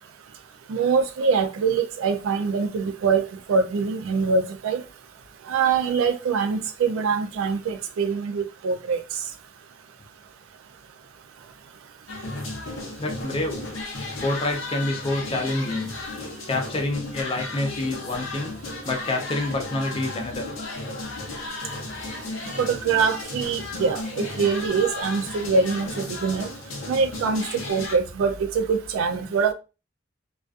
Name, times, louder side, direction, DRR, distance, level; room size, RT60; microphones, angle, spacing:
voice 1, 0.7-4.8 5.5-9.0 22.6-26.5 26.9-29.5, right 5 dB, 85° right, 0.3 m, -24 dB
sound 1, 12.1-28.0, left 2 dB, 75° left, 0.6 m, -34 dB
voice 2, 13.0-13.6 14.2-15.9 16.5-18.5 18.8-20.5, left 2 dB, 25° left, 0.5 m, -27 dB
2.4 x 2.4 x 2.3 m
head